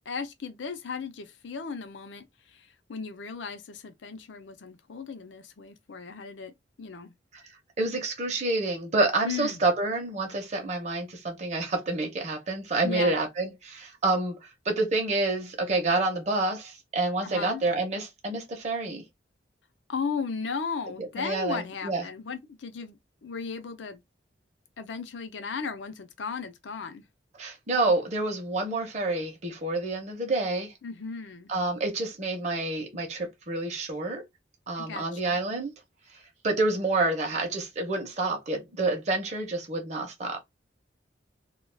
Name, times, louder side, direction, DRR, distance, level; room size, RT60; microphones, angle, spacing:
voice 1, 0.1-6.5 6.8-7.1 9.2-9.6 12.8-13.2 17.2-17.6 19.9-23.0 23.2-24.0 24.8-27.0 30.8-31.5 34.8-35.4, left 5 dB, 90° left, 0.6 m, -36 dB
voice 2, 7.8-19.0 21.0-22.0 27.4-30.7 31.5-34.2 34.7-35.7 36.4-40.4, right 2 dB, 40° right, 0.6 m, -28 dB
2.3 x 2.3 x 3.2 m
head